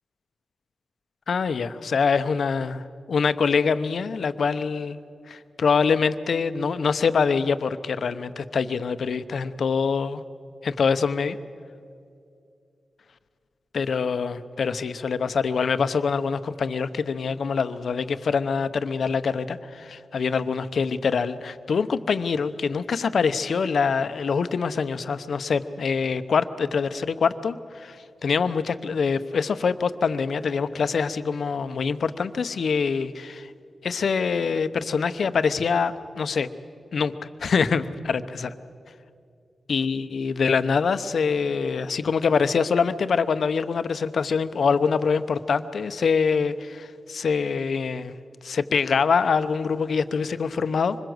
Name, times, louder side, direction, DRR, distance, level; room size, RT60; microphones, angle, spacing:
voice 1, 1.3-5.0 5.3-10.2 10.6-11.4 13.7-33.5 33.8-36.5 36.9-38.1 39.7-48.2 48.4-51.0, left 5 dB, 75° left, 11 dB, 0.9 m, -24 dB
25.0 x 21.0 x 7.9 m, 2.4 s
cardioid pair, 60°, 0 cm